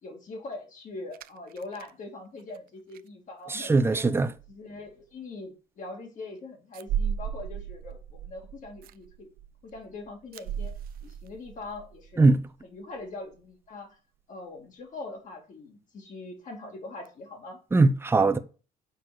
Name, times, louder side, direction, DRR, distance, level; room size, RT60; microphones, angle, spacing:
voice 1, 0.0-4.1 4.5-9.3 9.6-10.7 11.0-12.3 12.6-14.0 14.3-17.6, left 2 dB, 50° left, 2.6 m, -42 dB
sound 1, 1.1-1.9 2.4-2.6 2.9-3.0 3.8-4.1 4.4-4.6 4.9-5.0 6.7-12.6 12.9-13.1 13.3-13.4 17.1-17.2, right 8 dB, 60° right, 0.4 m, -36 dB
voice 2, 3.5-4.3 12.2-12.4 17.7-18.4, right 3 dB, 15° right, 0.7 m, -21 dB
6.6 x 4.0 x 6.1 m
cardioid pair, 110°, 17 cm